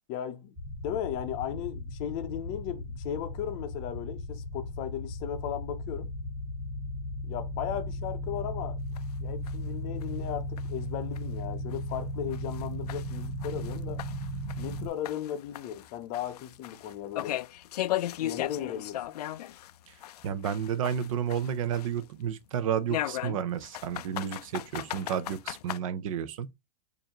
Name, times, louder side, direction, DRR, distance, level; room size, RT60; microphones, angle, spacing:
voice 1, 0.1-0.5 0.8-6.1 7.2-8.8 9.2-14.0 14.6-17.4 18.1-19.2, left 10 dB, 30° left, 0.6 m, -36 dB
sound 1, 0.6-14.9, left 1 dB, 25° right, 1.1 m, -36 dB
sound 2, 9.0-9.1 9.5-9.6 10.0-10.1 10.6-10.7 11.2-11.3 11.7-11.8 12.3-14.8 15.0-19.7 20.0-22.1 22.9-25.8, left 13 dB, 75° left, 0.4 m, -36 dB
voice 2, 20.2-26.5, right 8 dB, 55° right, 0.6 m, -31 dB
6.8 x 2.6 x 2.9 m
supercardioid pair, 160°, 20 cm